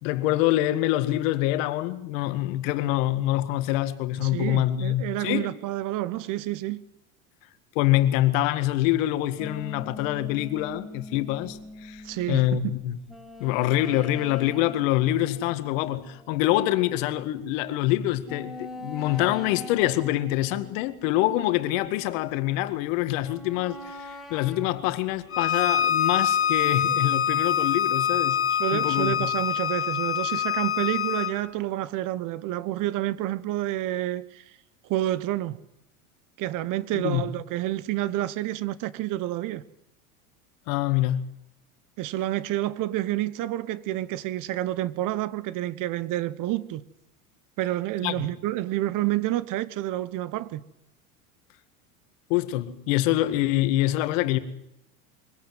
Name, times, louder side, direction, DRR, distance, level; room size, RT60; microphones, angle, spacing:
voice 1, 0.0-5.5 7.8-12.9 13.4-28.4 28.7-29.3 36.9-37.2 40.7-41.2 48.0-48.2 52.3-54.4, left 15 dB, 65° left, 2.1 m, -25 dB
voice 2, 4.2-6.8 12.0-12.8 28.5-34.4 34.8-35.6 36.4-39.6 42.0-46.8 47.6-50.6, right 15 dB, 50° right, 1.2 m, -29 dB
sound 1, 9.4-17.1 17.6-17.7 18.2-22.7 23.2-26.8, left 1 dB, ahead, 5.9 m, -44 dB
Bowed string instrument, 25.3-31.4, left 8 dB, 30° left, 2.0 m, -25 dB
23.5 x 17.5 x 9.3 m
hypercardioid pair, 95°, 42 cm